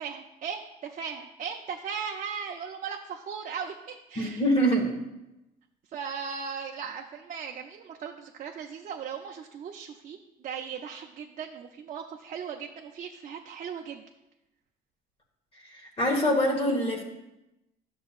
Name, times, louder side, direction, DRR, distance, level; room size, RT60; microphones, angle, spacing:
voice 1, 0.0-4.4 5.9-14.0, right 6 dB, 50° right, 2 dB, 0.6 m, -38 dB
voice 2, 4.2-4.9 15.7-17.0, equal, 35° left, 0 dB, 1.4 m, -25 dB
11.0 x 6.9 x 2.5 m, 0.95 s
cardioid pair, 110°, 17 cm